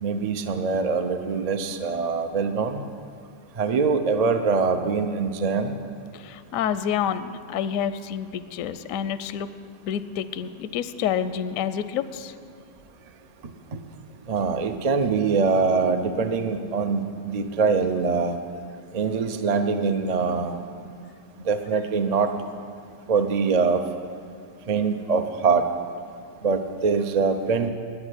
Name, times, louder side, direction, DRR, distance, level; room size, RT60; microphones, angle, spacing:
voice 1, 0.0-2.8 3.6-5.7 14.3-18.4 18.9-20.5 21.5-22.3 23.1-23.8 24.7-25.6 26.4-27.7, right 5 dB, 90° right, 7 dB, 0.3 m, -23 dB
voice 2, 6.1-9.5 9.8-12.3, left 8 dB, 70° left, 13 dB, 0.8 m, -28 dB
10.0 x 9.4 x 9.9 m, 2.3 s
omnidirectional pair, 1.9 m